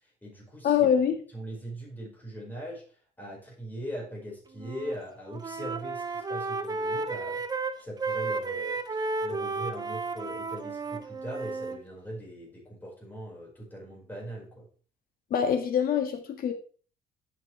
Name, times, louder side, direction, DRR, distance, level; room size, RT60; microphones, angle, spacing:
voice 1, 0.0-0.8 1.3-14.7, equal, 10° left, -3 dB, 5.0 m, -41 dB
voice 2, 0.6-1.2 15.3-16.5, left 8 dB, 60° left, 6 dB, 1.7 m, -24 dB
Wind instrument woodwind instrument, 4.5-5.0 5.2-11.8, right 3 dB, 25° right, 0.9 m, -33 dB
11.0 x 6.5 x 3.3 m, 0.40 s
cardioid pair, 110°, 17 cm